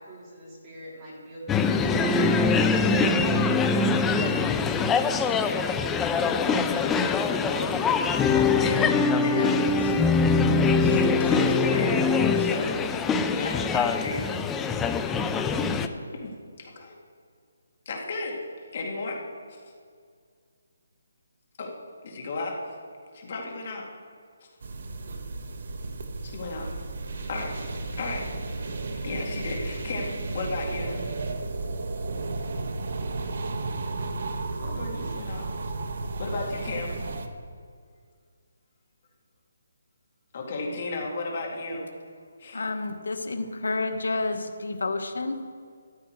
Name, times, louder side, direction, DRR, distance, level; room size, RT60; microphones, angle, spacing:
voice 1, 0.0-2.4, right 1 dB, 15° right, -8 dB, 3.5 m, -43 dB
sound 1, 1.5-15.9, left 4 dB, 5° left, 0.4 m, -23 dB
voice 2, 2.8-3.2 5.1-5.4 6.7-10.5 10.8-12.8 13.3-14.2 16.1-16.9 17.9-18.4 18.7-19.2 19.5-19.6 21.6-21.7 22.0-22.7 23.1-23.9 24.4-24.5 26.2-26.7 27.2-27.5 28.0-28.3 29.0-31.0 34.6-35.5 36.2-37.0 40.3-41.9 42.4-42.6, left 2 dB, 35° left, 0 dB, 2.2 m, -34 dB
sound 2, 24.6-37.3, right 3 dB, 50° right, 1.1 m, -33 dB
voice 3, 42.5-45.4, left 3 dB, 90° left, 7 dB, 1.3 m, -30 dB
14.0 x 12.5 x 4.7 m, 2.1 s
hypercardioid pair, 175°, 0 cm